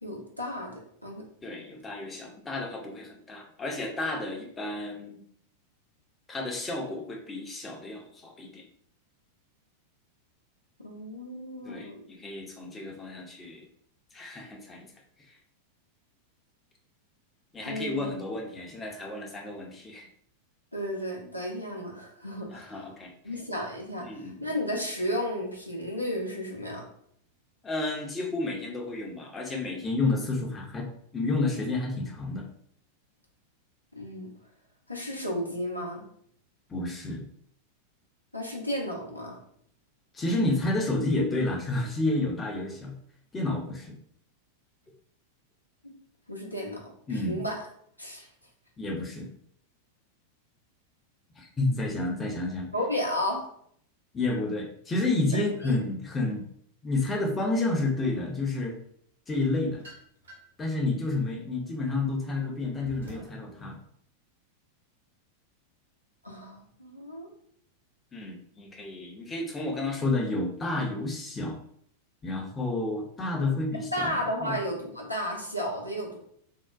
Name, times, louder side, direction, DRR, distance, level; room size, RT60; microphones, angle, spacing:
voice 1, 0.0-1.2 10.8-12.1 17.7-18.0 20.7-22.9 23.2-26.8 33.9-34.3 34.9-36.0 38.3-39.4 45.8-46.0 46.3-47.6 48.0-48.3 52.7-53.5 55.3-55.8 66.2-67.3 73.9-76.2, equal, 90° left, -1 dB, 0.6 m, -33 dB
voice 2, 1.4-5.2 6.3-8.6 11.7-13.6 14.1-14.9 15.3-15.4 17.5-20.1 22.5-23.1 24.0-24.5 27.6-32.5 36.7-37.2 40.1-42.9 43.3-44.0 47.1-47.4 48.8-49.3 51.4-52.7 54.1-56.4 56.8-58.8 59.3-59.8 60.6-63.8 68.1-71.6 72.2-74.2 74.4-74.6, left 2 dB, 15° left, 1 dB, 0.5 m, -30 dB
sound 1, 59.3-60.6 61.2-63.4, equal, 70° right, 0.9 m, -50 dB
3.5 x 2.1 x 2.4 m, 0.66 s
figure-of-eight pair, 90°, 0 cm